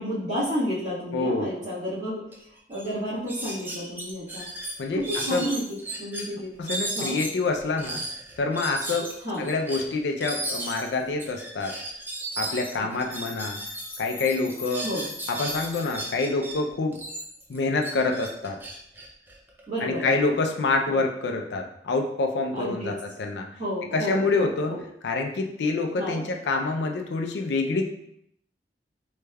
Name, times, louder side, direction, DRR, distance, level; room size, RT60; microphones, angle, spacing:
voice 1, 0.0-2.2 2.7-4.4 4.9-6.5 6.9-7.2 9.2-9.4 12.8-12.9 14.8-15.1 19.7-20.1 20.9-21.0 22.5-22.9 23.6-24.8 26.0-26.2, equal, 45° right, -16 dB, 1.2 m, -31 dB
voice 2, 1.1-1.5 4.8-5.5 6.6-8.0 8.4-9.1 9.4-11.7 12.4-13.6 14.0-14.9 15.3-17.0 17.5-18.6 19.8-23.5 23.9-24.8 25.0-27.9, left 3 dB, 75° left, 3 dB, 0.4 m, -27 dB
sound 1, 2.3-2.4 2.7-2.9 3.3-6.2 6.6-14.0 14.2-16.5 16.9-19.8, right 1 dB, 10° right, 0.4 m, -35 dB
sound 2, 13.1-16.3, left 3 dB, 55° left, 1.0 m, -42 dB
3.3 x 3.1 x 2.2 m, 0.73 s
head